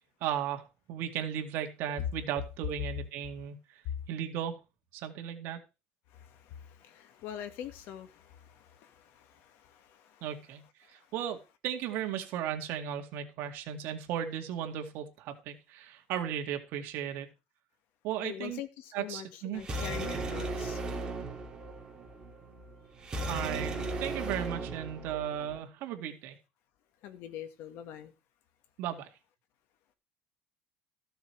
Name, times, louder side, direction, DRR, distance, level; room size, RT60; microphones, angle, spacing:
voice 1, 0.2-3.8 4.1-4.6 4.9-5.6 10.2-10.6 10.9-17.3 18.0-18.6 18.9-19.6 23.3-26.4 28.8-29.1, right 10 dB, 60° right, 5 dB, 2.3 m, -36 dB
voice 2, 6.1-10.2 18.2-20.8 27.0-28.1, left 10 dB, 60° left, 9 dB, 1.9 m, -43 dB
sound 1, 19.5-25.6, right 2 dB, 15° right, 3.0 m, -37 dB
15.0 x 6.7 x 4.7 m, 0.28 s
cardioid pair, 160°, 4 cm